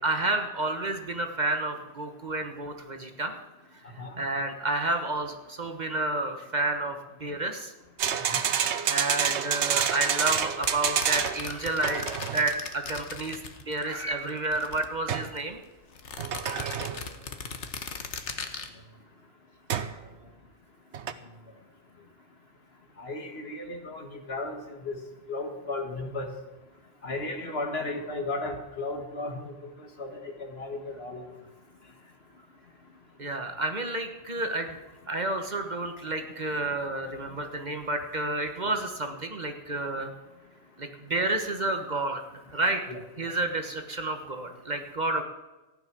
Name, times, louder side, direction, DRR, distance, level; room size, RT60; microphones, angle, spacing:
voice 1, 0.0-3.3 4.2-7.7 8.2-8.5 8.8-13.4 13.7-15.6 16.5-16.8 33.2-34.8 35.1-40.1 40.8-42.8 43.2-45.2, right 2 dB, 40° right, 5 dB, 1.3 m, -30 dB
sound 1, 8.0-11.5 11.8-12.5 15.1-15.4 16.2-17.1 19.7-20.0 20.9-21.1, right 8 dB, 80° right, 1.1 m, -28 dB
sound 2, 10.2-14.0 14.3-15.4 15.9-18.7, left 5 dB, 80° left, 1.5 m, -39 dB
voice 2, 23.0-24.6 24.9-25.0 25.3-26.3 27.0-29.5 30.0-30.1 30.4-31.2 42.9-43.0, left 2 dB, 60° left, 4 dB, 2.0 m, -34 dB
15.0 x 10.5 x 6.1 m, 1.1 s
omnidirectional pair, 1.2 m